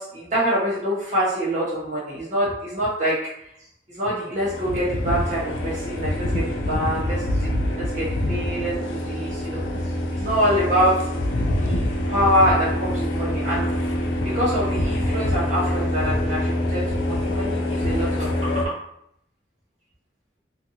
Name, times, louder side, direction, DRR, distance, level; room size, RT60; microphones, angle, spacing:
voice 1, 0.0-3.5 3.9-11.1 11.5-13.7 14.2-18.8, equal, 40° right, -8 dB, 0.7 m, -25 dB
sound 1, 4.3-18.6, left 1 dB, 90° left, 0.4 m, -25 dB
2.6 x 2.5 x 2.7 m, 0.75 s
head